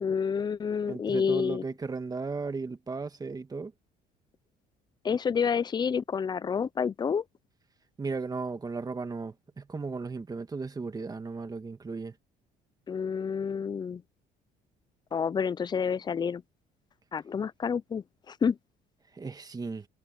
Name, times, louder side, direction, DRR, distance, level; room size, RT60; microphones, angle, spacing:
voice 1, 0.0-1.6 5.0-7.2 12.9-14.0 15.1-16.4 17.1-18.6, left 6 dB, 25° left, 0.5 m, -29 dB
voice 2, 0.9-3.7 8.0-12.1 19.1-19.9, right 4 dB, 20° right, 1.9 m, -35 dB
cardioid pair, 110°, 17 cm